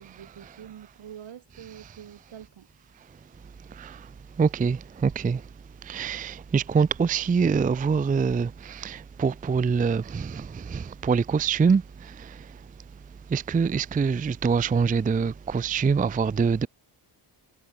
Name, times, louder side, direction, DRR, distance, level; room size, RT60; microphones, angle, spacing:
voice 1, 0.0-2.7, right 10 dB, 80° right, 5.3 m, -45 dB
voice 2, 3.7-4.1 4.4-5.5 5.8-12.6 13.3-16.7, right 5 dB, 20° right, 0.4 m, -25 dB
wide cardioid pair, 170°, 46 cm